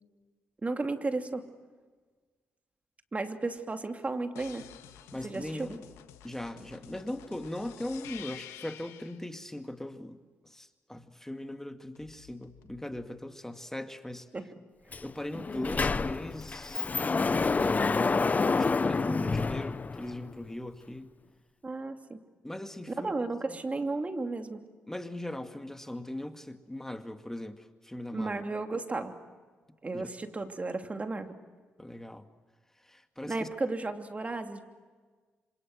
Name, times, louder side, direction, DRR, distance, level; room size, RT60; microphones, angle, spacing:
voice 1, 0.6-1.5 3.1-4.7 5.2-5.7 14.3-14.5 21.6-22.2 23.0-24.6 28.1-29.2 29.8-31.4 33.3-34.6, right 3 dB, 30° right, 6 dB, 2.8 m, -34 dB
sound 1, 4.4-9.2 12.0-13.0, left 11 dB, 85° left, 1.5 m, -50 dB
voice 2, 5.1-5.8 6.2-10.2 10.4-14.3 15.0-16.9 17.2-21.1 22.4-23.3 24.9-28.4 29.9-30.1 31.8-32.3 32.8-33.5, left 1 dB, 10° left, 7 dB, 2.1 m, -39 dB
Sliding door, 14.9-15.0 15.3-20.3, left 4 dB, 35° left, 0.8 m, -28 dB
26.5 x 26.5 x 7.7 m, 1.4 s
supercardioid pair, 50°, 5 cm